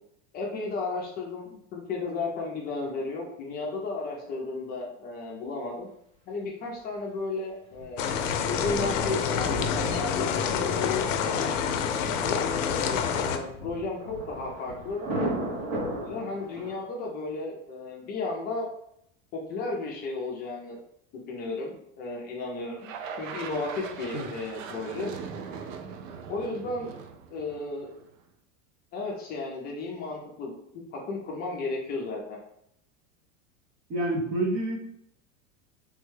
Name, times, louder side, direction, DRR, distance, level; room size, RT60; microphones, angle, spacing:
voice 1, 0.3-5.9 6.3-8.1 8.5-11.5 12.0-15.1 15.6-18.7 19.3-20.8 21.3-22.9 23.2-25.1 26.3-26.9 27.3-27.9 28.9-30.5 30.9-32.4, left 3 dB, 25° left, -1 dB, 0.5 m, -34 dB
Thunder, 7.7-16.7, right 1 dB, 50° right, 0.9 m, -37 dB
sound 1, 8.0-13.4, left 7 dB, 90° left, 0.5 m, -27 dB
sound 2, 22.8-28.1, right 6 dB, 90° right, 0.5 m, -40 dB
voice 2, 33.9-34.8, right 1 dB, 25° right, -2 dB, 0.5 m, -28 dB
3.4 x 2.1 x 3.2 m, 0.74 s
supercardioid pair, 150°, 37 cm